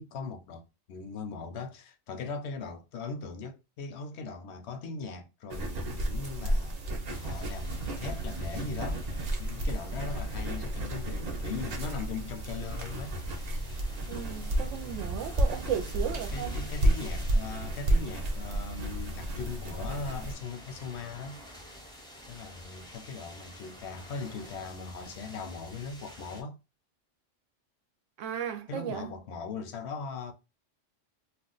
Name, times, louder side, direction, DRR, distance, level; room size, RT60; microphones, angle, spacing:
voice 1, 0.0-6.8 7.2-9.0 9.4-13.2 16.3-21.4 22.3-26.6 28.7-30.3, left 4 dB, 70° left, 0.8 m, -39 dB
sound 1, 5.5-20.3, right 1 dB, 50° right, 0.5 m, -32 dB
sound 2, 7.1-26.4, equal, 5° left, 0.5 m, -50 dB
voice 2, 14.1-16.6 28.2-29.1, right 9 dB, 80° right, 0.9 m, -35 dB
2.5 x 2.2 x 3.8 m
omnidirectional pair, 1.3 m